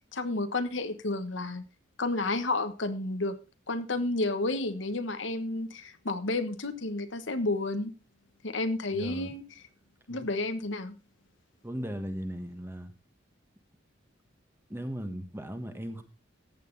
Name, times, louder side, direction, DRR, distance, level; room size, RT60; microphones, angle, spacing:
voice 1, 0.1-1.6 2.0-3.4 3.7-7.9 8.4-9.4 10.1-10.9, left 2 dB, 70° left, 1.3 m, -31 dB
voice 2, 8.9-9.3 10.1-10.3 11.6-12.9 14.7-16.0, equal, 10° right, 1.4 m, -37 dB
14.5 x 9.4 x 3.9 m
head